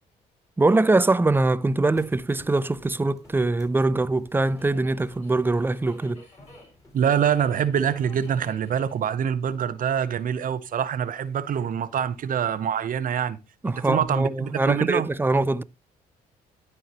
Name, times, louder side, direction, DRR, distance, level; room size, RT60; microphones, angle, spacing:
voice 1, 0.6-6.2 13.6-15.6, right 2 dB, 15° right, 0.5 m, -23 dB
Subway metro underground, 1.7-12.2, left 1 dB, 40° left, 4.8 m, -55 dB
sound 1, 2.0-8.7, left 1 dB, 20° left, 4.1 m, -52 dB
voice 2, 6.9-13.4 13.6-15.1, right 8 dB, 60° right, 0.7 m, -25 dB
12.5 x 4.5 x 2.9 m
supercardioid pair, 70°, 16 cm